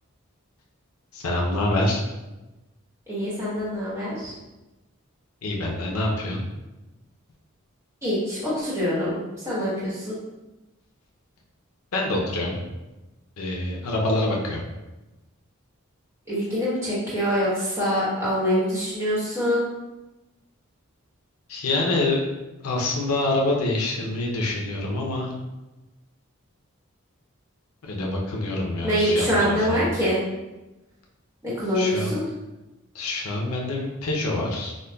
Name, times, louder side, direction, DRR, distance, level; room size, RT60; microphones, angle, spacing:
voice 1, 1.1-2.0 5.4-6.4 11.9-12.6 13.4-14.6 21.5-22.2 22.6-25.3 27.8-29.8 31.7-32.1 32.9-34.7, left 2 dB, 90° left, -1 dB, 0.6 m, -26 dB
voice 2, 3.1-4.3 8.0-9.2 9.4-10.2 16.3-19.6 28.8-30.2 31.4-32.2, equal, 15° right, -10 dB, 1.0 m, -24 dB
5.0 x 2.2 x 2.2 m, 1.1 s
head